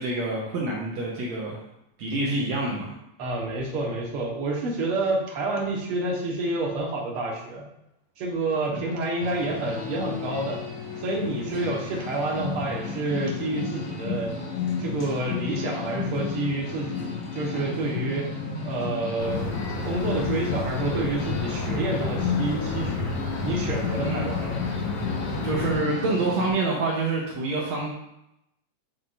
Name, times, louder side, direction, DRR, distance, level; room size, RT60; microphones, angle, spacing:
voice 1, 0.0-1.6 2.0-2.9 8.7-8.9 24.0-24.2 25.4-27.9, right 3 dB, 70° right, -3 dB, 2.0 m, -27 dB
voice 2, 3.2-7.6 8.2-10.6 11.0-14.3 14.8-18.3 18.6-23.1 23.4-24.6, right 2 dB, 55° right, -2 dB, 1.9 m, -29 dB
sound 1, 9.2-26.5, left 5 dB, 50° left, 2.0 m, -32 dB
sound 2, 19.2-25.8, left 3 dB, 70° left, 2.6 m, -32 dB
8.7 x 5.7 x 2.6 m, 0.84 s
omnidirectional pair, 3.6 m